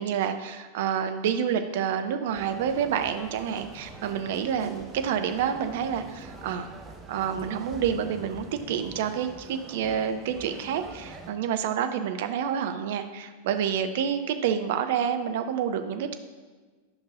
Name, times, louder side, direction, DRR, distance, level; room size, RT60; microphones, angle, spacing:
voice 1, 0.0-6.7 7.1-16.1, right 8 dB, 55° right, 8 dB, 0.5 m, -28 dB
sound 1, 2.3-11.3, right 3 dB, 20° right, 0.9 m, -45 dB
10.5 x 5.5 x 2.5 m, 1.4 s
figure-of-eight pair, 90°, 0 cm